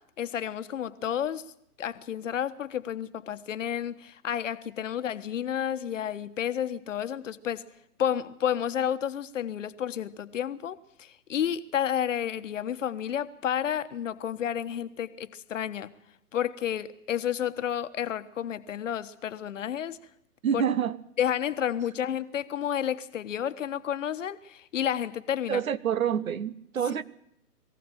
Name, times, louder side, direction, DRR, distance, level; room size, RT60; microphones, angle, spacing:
voice 1, 0.2-1.4 1.8-7.6 8.0-15.9 16.3-20.0 20.5-20.6 21.2-25.6, left 9 dB, 55° left, 1.4 m, -31 dB
voice 2, 20.4-21.0 25.5-27.0, right 8 dB, 60° right, 1.3 m, -27 dB
22.5 x 16.0 x 9.0 m
figure-of-eight pair, 130°, 46 cm